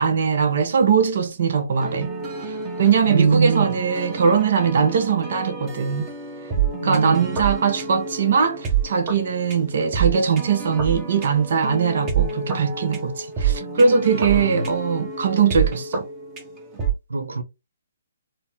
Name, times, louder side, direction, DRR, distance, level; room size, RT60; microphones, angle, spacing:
voice 1, 0.0-2.1 2.4-6.1 6.8-16.1, right 6 dB, 55° right, 0.6 m, -21 dB
sound 1, 1.8-16.9, right 7 dB, 20° right, 1.0 m, -28 dB
voice 2, 3.1-3.7 6.6-7.3 14.1-14.5 17.1-17.4, right 5 dB, 85° right, 0.8 m, -22 dB
4.1 x 2.1 x 2.7 m
hypercardioid pair, 145°, 0 cm